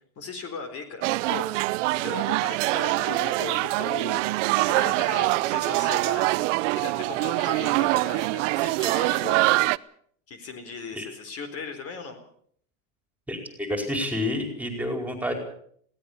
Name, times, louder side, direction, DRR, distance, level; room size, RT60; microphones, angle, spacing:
voice 1, 0.2-1.5 2.0-4.3 4.5-9.4 10.3-12.2, left 4 dB, 35° left, 8 dB, 4.2 m, -37 dB
sound 1, 1.0-9.8, right 21 dB, 60° right, 0.8 m, -24 dB
voice 2, 13.3-15.3, left 1 dB, 5° right, 4 dB, 4.8 m, -29 dB
22.0 x 17.5 x 7.0 m, 0.63 s
supercardioid pair, 130°, 41 cm